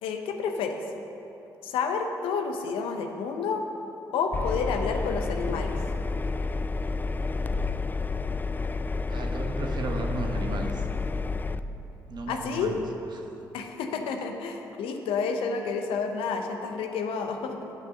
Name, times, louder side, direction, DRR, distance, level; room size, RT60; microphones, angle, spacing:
voice 1, 0.0-0.8 1.6-3.6 4.1-5.8 12.3-12.7 13.5-17.7, left 5 dB, 70° left, 5 dB, 0.8 m, -30 dB
Engine, 4.3-11.6, left 3 dB, 20° left, 0.4 m, -30 dB
voice 2, 9.1-10.9 12.1-12.8 13.1-13.3, right 2 dB, 50° right, 3 dB, 1.2 m, -34 dB
8.8 x 6.1 x 6.7 m, 2.9 s
hypercardioid pair, 45°, 9 cm